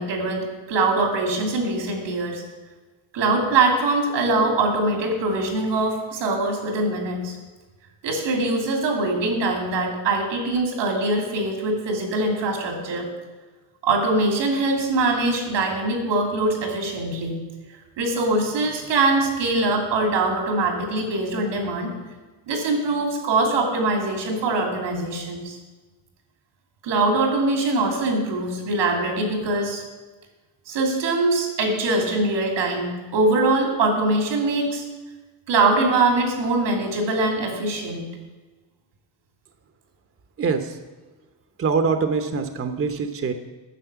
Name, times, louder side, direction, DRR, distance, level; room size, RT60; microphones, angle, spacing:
voice 1, 0.0-2.4 3.1-7.4 8.0-13.1 13.8-17.4 18.0-21.9 22.5-25.6 26.8-29.8 30.7-34.8 35.5-38.1, right 2 dB, 90° right, 1 dB, 2.9 m, -23 dB
voice 2, 40.4-40.8 41.6-43.3, right 5 dB, 30° right, 7 dB, 0.9 m, -24 dB
9.9 x 6.5 x 8.0 m, 1.3 s
cardioid pair, 105°, 42 cm